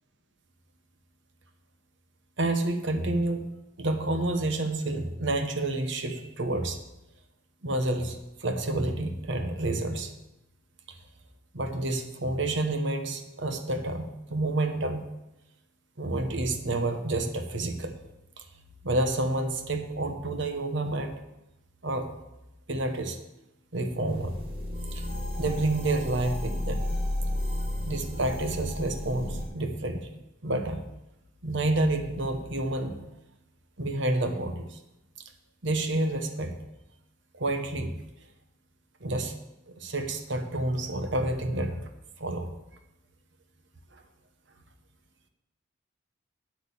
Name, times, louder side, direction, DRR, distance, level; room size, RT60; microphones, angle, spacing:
voice 1, 2.4-3.4 3.8-6.8 7.6-10.1 11.5-15.1 16.0-18.0 18.4-18.5 18.8-21.2 21.8-22.1 22.7-23.2 23.7-24.3 24.9-25.1 25.4-26.8 27.8-30.1 30.4-30.8 31.4-33.0 33.8-34.8 35.6-36.6 37.3-38.0 39.0-39.3 39.7-41.8 42.2-42.5 43.9-44.0, right 2 dB, 65° right, 7 dB, 1.2 m, -29 dB
sound 1, 24.1-29.4, left 1 dB, 30° right, 2.4 m, -32 dB
8.6 x 8.3 x 7.2 m, 0.93 s
head